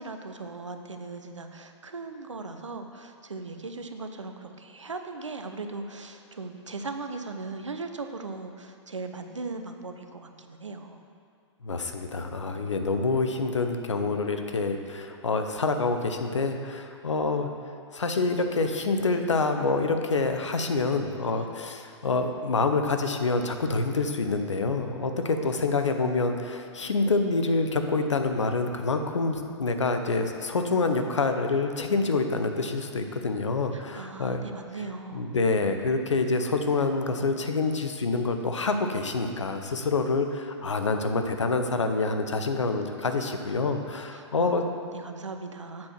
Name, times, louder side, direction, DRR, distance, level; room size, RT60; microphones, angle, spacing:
voice 1, 0.0-11.0 12.5-12.7 21.2-21.5 25.2-25.6 26.8-26.9 33.7-35.4 35.6-35.7 39.7-39.9 44.1-45.9, right 3 dB, 80° right, 6 dB, 0.6 m, -39 dB
voice 2, 11.6-17.5 17.9-34.4 35.1-44.6, left 3 dB, 75° left, 6 dB, 0.6 m, -27 dB
7.5 x 4.4 x 5.8 m, 2.3 s
figure-of-eight pair, 105°, 15 cm